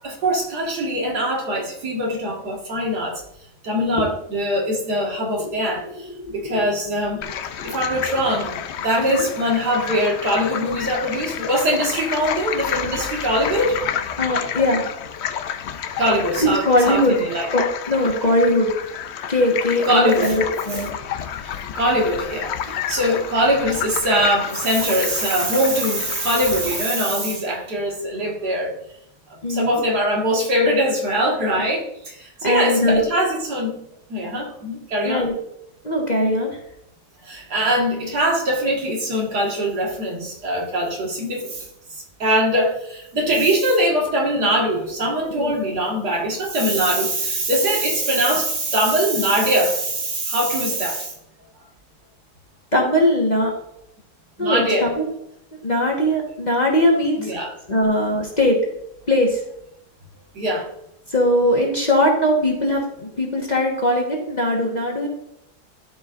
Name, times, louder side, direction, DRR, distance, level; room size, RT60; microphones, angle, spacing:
voice 1, 0.0-3.2 3.6-7.2 7.6-13.8 16.0-17.5 19.9-20.4 21.4-28.8 29.5-33.8 34.1-35.3 37.2-41.7 42.2-51.1 54.4-54.9 57.2-57.5 60.3-60.7, equal, 70° right, -2 dB, 2.3 m, -22 dB
voice 2, 6.1-6.6 7.6-7.7 9.0-9.3 14.2-14.8 16.4-17.2 17.5-18.7 19.3-20.9 22.7-22.8 29.4-29.8 32.4-33.0 35.0-35.4 35.8-36.6 45.3-45.5 52.7-53.5 54.4-55.1 55.5-57.3 57.7-58.6 59.1-59.4 61.1-65.1, left 1 dB, 30° left, -2 dB, 1.3 m, -20 dB
sound 1, 7.2-26.8, left 8 dB, 85° left, 0.5 m, -30 dB
13.0 x 5.0 x 2.5 m, 0.78 s
omnidirectional pair, 1.8 m